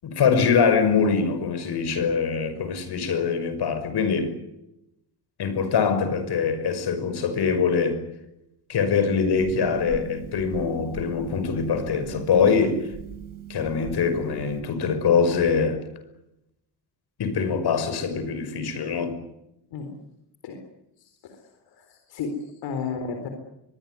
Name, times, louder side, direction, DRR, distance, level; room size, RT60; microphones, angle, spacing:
voice 1, 0.0-4.4 5.4-8.0 8.7-12.8 13.5-15.8 17.2-19.2, left 5 dB, 65° left, 5.8 m, -23 dB
Harp, 9.3-14.6, right 9 dB, 50° right, 4.9 m, -40 dB
voice 2, 21.0-23.3, left 5 dB, 90° left, 4.2 m, -34 dB
24.0 x 21.5 x 9.7 m
cardioid pair, 115°, 42 cm